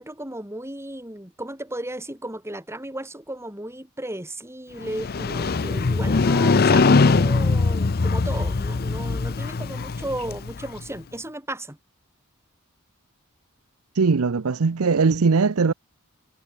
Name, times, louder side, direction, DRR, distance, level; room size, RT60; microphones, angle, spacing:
voice 1, 0.0-11.8, right 1 dB, 10° right, 7.1 m, -35 dB
Motorcycle, 4.8-10.8, left 4 dB, 45° left, 0.6 m, -21 dB
voice 2, 14.0-15.7, right 4 dB, 80° right, 0.7 m, -20 dB
head